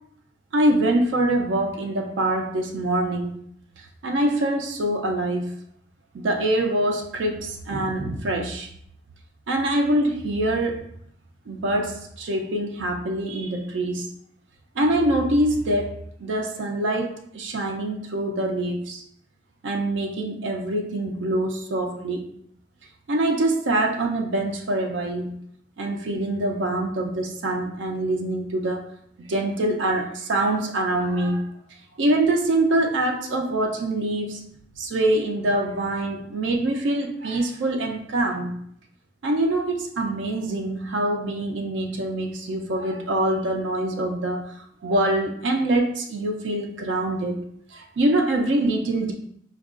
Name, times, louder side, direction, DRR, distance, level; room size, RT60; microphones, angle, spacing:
voice 1, 0.5-3.4 3.8-5.6 6.1-8.7 9.5-10.8 11.5-14.1 14.8-19.0 19.6-22.3 23.1-25.4 25.8-28.9 29.2-31.5 32.0-34.4 34.8-38.6 39.2-47.4 47.7-49.1, right 1 dB, 70° right, 2 dB, 0.4 m, -24 dB
4.4 x 2.3 x 2.4 m, 0.69 s
head